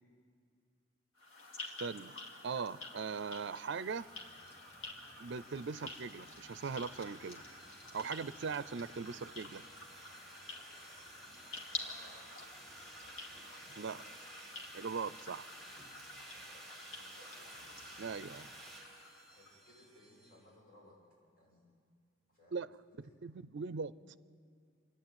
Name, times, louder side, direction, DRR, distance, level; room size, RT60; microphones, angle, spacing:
sound 1, 1.1-19.6, left 2 dB, 80° left, 2.1 m, -50 dB
voice 1, 1.7-2.2 2.4-4.1 5.2-7.4 7.9-9.6 13.8-14.0 14.7-15.5 18.0-18.5 22.5-24.2, right 5 dB, 60° right, 16 dB, 0.5 m, -40 dB
sound 2, 3.7-20.4, right 2 dB, ahead, 2.7 m, -55 dB
voice 2, 11.8-12.4 13.6-14.1 16.3-17.6 19.3-21.0 21.4-21.7 22.3-22.6 22.9-23.1, left 1 dB, 45° left, -4 dB, 7.4 m, -61 dB
27.0 x 11.0 x 8.8 m, 2.2 s
head